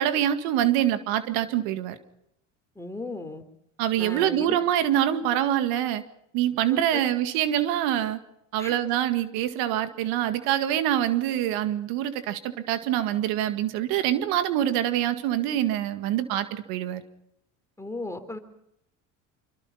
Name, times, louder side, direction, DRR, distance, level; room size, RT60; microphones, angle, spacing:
voice 1, 0.0-2.0 3.8-6.0 6.3-8.2 8.5-17.0, right 11 dB, 70° right, 10 dB, 2.0 m, -25 dB
voice 2, 2.8-3.4 4.0-4.6 6.7-7.1 8.6-8.8 17.8-18.4, left 2 dB, 10° left, 7 dB, 3.7 m, -36 dB
26.5 x 24.0 x 5.7 m, 0.77 s
supercardioid pair, 105°, 37 cm